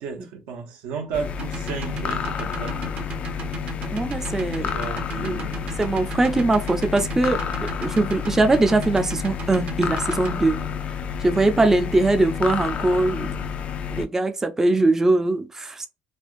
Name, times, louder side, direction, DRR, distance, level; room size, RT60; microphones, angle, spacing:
voice 1, 0.0-2.8 4.6-5.6, right 6 dB, 80° right, 1.0 m, -33 dB
sound 1, 1.1-14.1, left 7 dB, 50° left, 0.4 m, -30 dB
sound 2, 1.4-10.3, right 6 dB, 55° right, 0.9 m, -36 dB
voice 2, 3.9-4.7 5.2-5.4 5.8-7.4 7.8-10.6 11.2-13.3 13.9-15.9, right 2 dB, 15° right, 0.4 m, -21 dB
3.3 x 2.4 x 2.5 m
cardioid pair, 105°, 3 cm